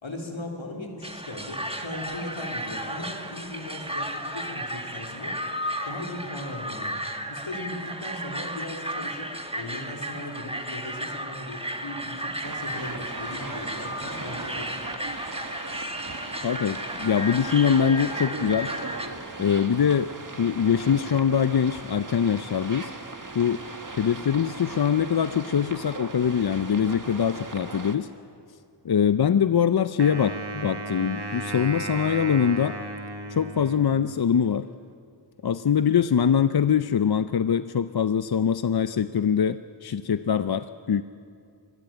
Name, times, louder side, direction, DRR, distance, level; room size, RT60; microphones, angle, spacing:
voice 1, 0.0-5.4 5.9-7.0 7.3-14.7, left 1 dB, 85° left, 1 dB, 3.7 m, -38 dB
sound 1, 1.0-19.1, equal, 10° right, 1.6 m, -34 dB
sound 2, 12.4-28.0, right 3 dB, 45° right, 1.7 m, -38 dB
voice 2, 16.4-18.7 19.4-20.1 20.4-22.9 23.3-28.1 28.8-32.8 33.3-34.7 35.4-41.0, left 7 dB, 55° left, 12 dB, 0.6 m, -23 dB
Wind instrument woodwind instrument, 30.0-34.3, right 3 dB, 60° right, 2.0 m, -35 dB
23.5 x 19.0 x 9.1 m, 2.4 s
wide cardioid pair, 65°, 45 cm